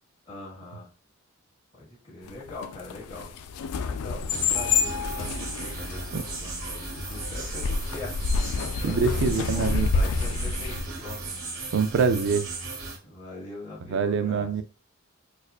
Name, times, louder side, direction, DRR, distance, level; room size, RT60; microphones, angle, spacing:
voice 1, 0.3-0.9 1.7-3.3 3.8-8.1 8.8-11.3 13.0-14.5, left 2 dB, 25° left, 1.6 m, -42 dB
sound 1, 2.3-10.9, left 4 dB, 90° left, 0.4 m, -29 dB
sound 2, 4.3-13.0, right 3 dB, 85° right, 1.3 m, -37 dB
sound 3, 4.5-10.7, equal, 60° left, 0.9 m, -41 dB
voice 2, 8.8-9.9 11.7-12.5 13.9-14.6, right 5 dB, 60° right, 0.4 m, -24 dB
4.3 x 2.5 x 2.3 m
head